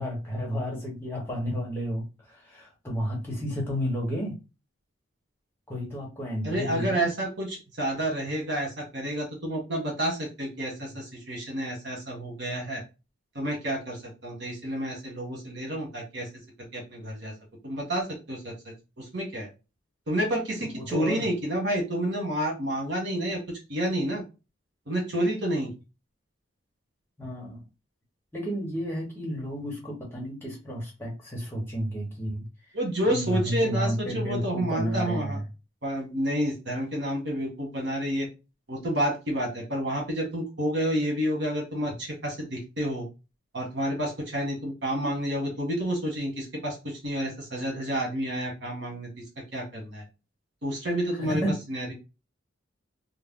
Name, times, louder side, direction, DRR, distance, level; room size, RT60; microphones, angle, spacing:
voice 1, 0.0-4.3 5.7-7.1 20.6-21.3 27.2-27.6 28.3-32.7 33.0-35.4 51.2-51.6, equal, 10° left, 1.2 m, -32 dB
voice 2, 6.4-12.8 13.3-16.3 16.7-17.3 17.6-18.5 19.0-19.5 20.1-23.4 23.7-24.2 24.9-25.7 32.7-35.4 35.8-38.3 38.7-43.1 43.5-49.1 49.5-50.0 50.6-51.4 51.7-51.9, right 1 dB, 55° right, 1.5 m, -29 dB
3.3 x 2.1 x 3.6 m
head